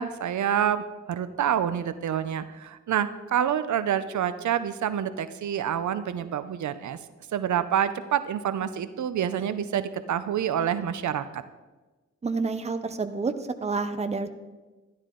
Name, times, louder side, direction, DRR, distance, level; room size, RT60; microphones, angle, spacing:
voice 1, 0.0-7.0 7.3-11.4, right 9 dB, 80° right, 12 dB, 0.6 m, -27 dB
voice 2, 12.2-13.3 13.6-14.3, right 4 dB, 20° right, 9 dB, 0.6 m, -28 dB
12.5 x 11.0 x 3.8 m, 1.2 s
wide cardioid pair, 120°, 29 cm